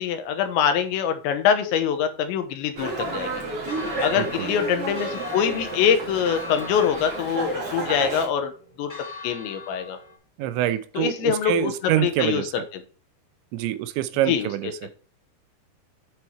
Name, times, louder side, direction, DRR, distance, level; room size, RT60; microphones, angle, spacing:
voice 1, 0.0-3.3 4.0-8.5 8.8-8.9 9.2-10.0 11.0-11.7 12.0-12.6 14.3-14.5, left 8 dB, 85° left, 8 dB, 3.3 m, -24 dB
Dog, 2.8-8.3, right 3 dB, 40° right, 2.5 m, -31 dB
Church bell, 3.7-10.2, left 2 dB, 20° left, 2.7 m, -41 dB
voice 2, 4.2-4.5 10.4-12.6 13.5-14.9, right 13 dB, 90° right, 12 dB, 3.0 m, -26 dB
8.5 x 4.5 x 4.6 m, 0.37 s
omnidirectional pair, 5.2 m